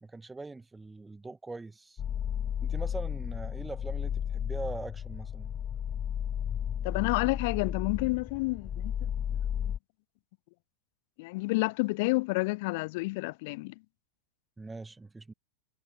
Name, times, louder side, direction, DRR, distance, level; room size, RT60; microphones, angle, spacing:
voice 1, 0.0-2.0 2.6-5.5 14.6-15.3, right 3 dB, 10° right, 1.2 m, -42 dB
sound 1, 2.0-9.8, left 9 dB, 25° left, 1.7 m, -33 dB
voice 2, 6.8-9.1 11.2-13.7, left 25 dB, 50° left, 0.3 m, -30 dB
figure-of-eight pair, 90°, 0 cm